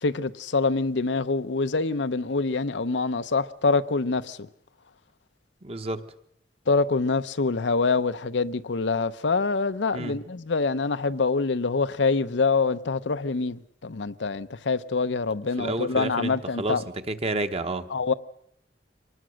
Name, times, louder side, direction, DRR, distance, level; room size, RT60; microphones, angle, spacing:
voice 1, 0.0-4.5 6.7-16.8 17.9-18.1, left 4 dB, 85° left, 0.7 m, -25 dB
voice 2, 5.6-6.0 9.9-10.2 15.6-16.8 17.1-17.9, right 2 dB, 35° right, 1.1 m, -30 dB
24.5 x 19.5 x 6.3 m
head